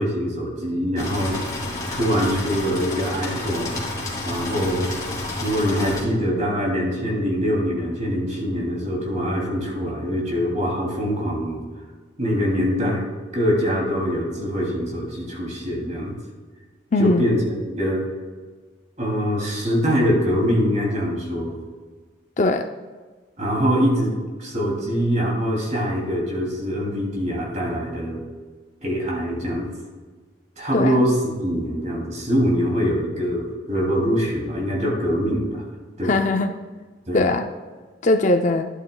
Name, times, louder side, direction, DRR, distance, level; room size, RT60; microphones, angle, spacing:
voice 1, 0.0-1.4 1.9-3.8 4.2-4.9 5.4-11.6 12.2-13.0 13.3-16.2 17.0-18.0 19.0-21.5 23.4-24.1 24.4-28.2 28.8-29.7 30.6-35.6 36.0-36.1 37.1-37.2, equal, 40° right, -2 dB, 2.6 m, -23 dB
sound 1, 1.0-6.0, left 2 dB, 20° left, 2.6 m, -30 dB
voice 2, 16.9-17.3 22.4-22.7 30.7-31.1 36.0-36.5 37.1-37.5 38.0-38.7, left 2 dB, 40° left, 6 dB, 0.4 m, -20 dB
11.5 x 11.0 x 2.2 m, 1.4 s
head